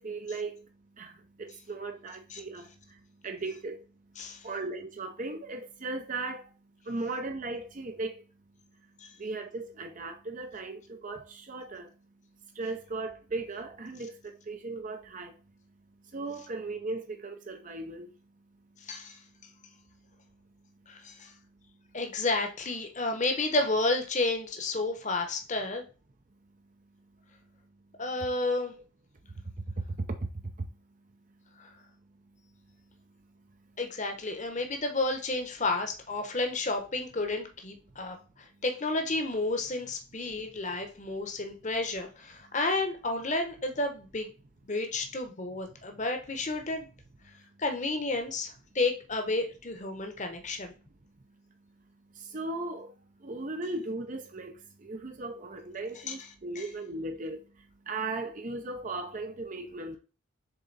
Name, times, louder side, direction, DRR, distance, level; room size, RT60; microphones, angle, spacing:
voice 1, 0.0-22.0 26.3-28.0 29.2-33.8 38.1-38.3 38.5-38.6 40.3-40.4 42.5-42.6 47.2-47.6 50.8-60.0, right 3 dB, 35° right, 0.6 m, -39 dB
voice 2, 18.9-19.2 20.9-21.3 21.9-25.8 28.0-28.7 31.6-31.7 33.8-44.3 44.6-46.9 47.6-50.7 56.1-56.2 56.5-56.6, left 2 dB, 35° left, 1.0 m, -31 dB
6.9 x 3.8 x 4.0 m
head